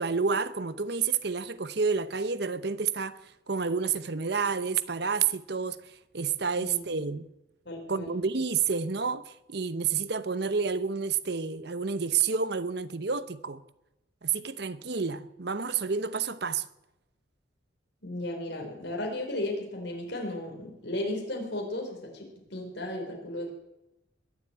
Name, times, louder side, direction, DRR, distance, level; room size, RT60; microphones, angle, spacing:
voice 1, 0.0-7.3 7.9-13.6 14.2-16.7, right 5 dB, 55° right, 0.8 m, -29 dB
voice 2, 6.6-6.9 7.6-8.2 18.0-23.5, left 1 dB, 65° left, 4.2 m, -35 dB
21.5 x 7.4 x 8.8 m
head